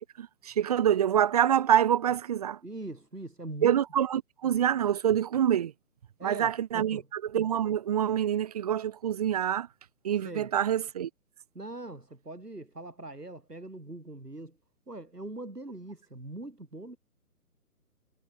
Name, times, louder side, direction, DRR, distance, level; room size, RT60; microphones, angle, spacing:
voice 1, 0.2-2.6 3.6-5.7 6.2-9.7 10.0-11.1, right 10 dB, 25° right, 1.2 m, -26 dB
voice 2, 2.6-3.8 6.2-7.1 10.2-10.5 11.5-14.5 14.9-17.0, right 2 dB, 85° right, 6.2 m, -42 dB
figure-of-eight pair, 140°, 46 cm